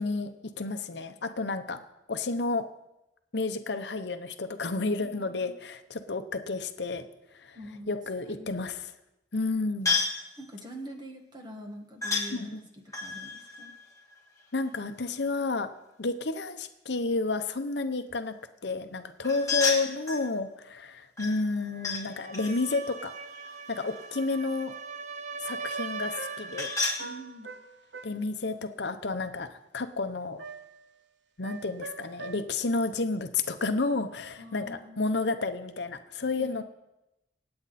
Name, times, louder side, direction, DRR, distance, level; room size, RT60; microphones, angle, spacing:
voice 1, 0.0-1.8 2.1-2.7 3.3-7.1 7.3-7.6 7.9-8.9 9.3-10.0 12.3-12.6 14.5-15.7 16.0-18.3 18.6-23.1 23.7-24.7 25.4-26.7 28.0-30.4 31.4-36.6, left 3 dB, 60° left, 8 dB, 0.8 m, -31 dB
voice 2, 5.0-5.5 7.5-8.0 8.3-8.5 10.4-12.6 13.0-13.7 19.4-19.5 27.0-27.5 34.4-35.0 36.3-36.6, equal, 25° right, 3 dB, 1.9 m, -44 dB
sound 1, 9.9-10.2 12.0-12.3 12.9-14.7 19.2-20.3 21.2-22.0 22.3-24.2 26.1-27.0, left 4 dB, 15° left, 2.7 m, -32 dB
sound 2, 22.1-27.0, right 5 dB, 40° right, 0.6 m, -40 dB
sound 3, 25.5-28.2 30.4-30.9 31.4-32.4, right 4 dB, 65° right, 0.9 m, -43 dB
26.0 x 8.7 x 4.2 m, 0.94 s
head